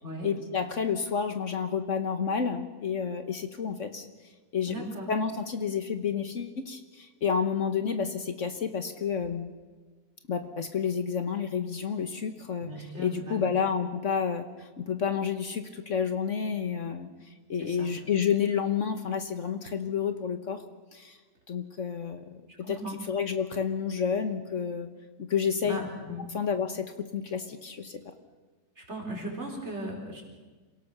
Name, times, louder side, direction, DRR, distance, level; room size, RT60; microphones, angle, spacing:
voice 1, 0.2-4.1 4.5-9.5 10.3-12.7 13.0-17.1 17.5-20.6 20.9-21.2 21.5-22.4 22.7-22.8 23.1-24.9 25.2-25.8 26.3-28.0, left 6 dB, 55° left, 8 dB, 1.5 m, -30 dB
voice 2, 4.7-5.1 12.6-13.5 17.6-17.9 22.5-23.0 25.6-26.3 28.8-30.2, equal, 45° right, 0 dB, 4.9 m, -37 dB
27.0 x 17.5 x 6.7 m, 1.4 s
omnidirectional pair, 1.6 m